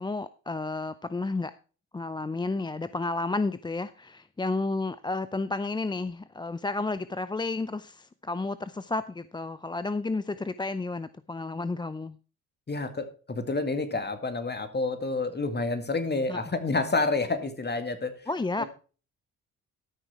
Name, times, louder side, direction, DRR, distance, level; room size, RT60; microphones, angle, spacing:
voice 1, 0.0-1.5 1.9-12.2 16.3-16.4 18.3-18.6, left 3 dB, 15° left, 14 dB, 0.5 m, -31 dB
voice 2, 12.7-18.1 18.6-18.7, left 3 dB, 30° left, 9 dB, 2.1 m, -29 dB
13.0 x 6.3 x 4.5 m, 0.37 s
supercardioid pair, 55°, 35 cm